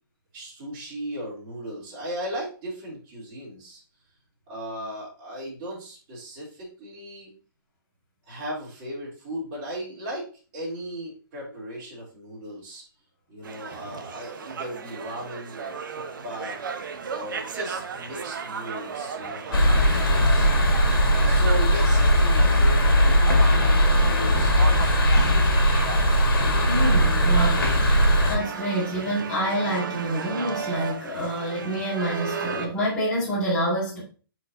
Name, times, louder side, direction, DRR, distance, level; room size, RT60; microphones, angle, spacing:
voice 1, 0.3-3.8 4.5-7.3 8.3-12.9 13.3-15.8 16.2-16.6 16.9-20.5 21.2-25.7, right 1 dB, 25° right, -7 dB, 3.6 m, -37 dB
sound 1, 13.4-32.7, right 6 dB, 60° right, 1.0 m, -35 dB
sound 2, 19.5-28.4, equal, 70° left, 2.0 m, -19 dB
voice 2, 26.6-34.0, right 1 dB, 5° left, -9 dB, 2.3 m, -27 dB
8.3 x 4.7 x 2.7 m, 0.38 s
hypercardioid pair, 170°, 12 cm